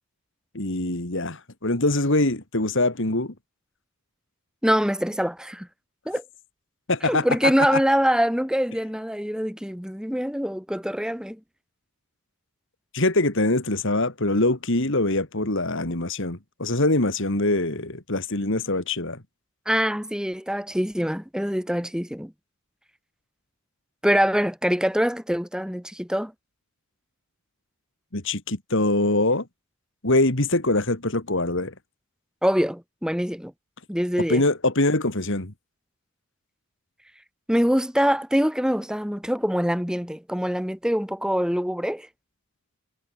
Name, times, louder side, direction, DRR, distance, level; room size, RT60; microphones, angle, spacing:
voice 1, 0.5-3.3 6.9-7.8 12.9-19.2 28.1-29.4 30.0-31.7 34.3-35.5, left 2 dB, 60° left, 2.8 m, -23 dB
voice 2, 4.6-5.7 6.1-6.2 7.0-11.4 19.7-22.3 24.0-26.3 32.4-33.5 33.9-34.5 37.5-42.1, equal, 5° right, 5.4 m, -24 dB
head